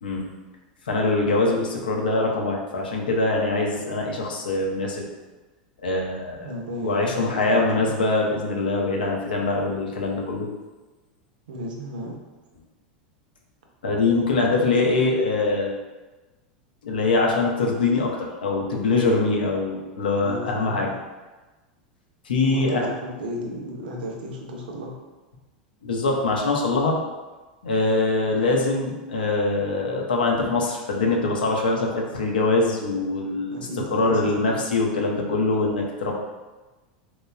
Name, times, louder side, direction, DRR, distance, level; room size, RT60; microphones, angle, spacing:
voice 1, 0.9-5.0 5.8-6.5 6.8-10.5 13.8-15.8 16.8-20.9 22.2-22.9 25.8-27.0 27.6-36.1, left 3 dB, 85° left, 0 dB, 0.5 m, -23 dB
voice 2, 6.4-7.9 11.5-12.2 20.2-20.9 22.4-25.0 33.5-34.6, equal, 80° right, 1 dB, 0.5 m, -34 dB
3.0 x 2.1 x 2.3 m, 1.2 s
hypercardioid pair, 100°, 5 cm